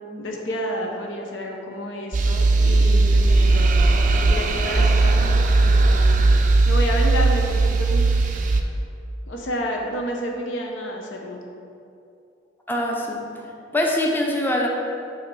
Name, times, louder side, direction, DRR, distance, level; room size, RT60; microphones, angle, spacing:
voice 1, 0.0-6.2 6.7-8.4 9.3-11.4, equal, 85° left, 1 dB, 0.8 m, -30 dB
sound 1, 2.1-8.6, right 3 dB, 45° right, 0.4 m, -18 dB
voice 2, 12.7-13.5 13.7-14.7, left 1 dB, 10° left, -1 dB, 0.5 m, -23 dB
7.9 x 2.9 x 4.6 m, 2.5 s
head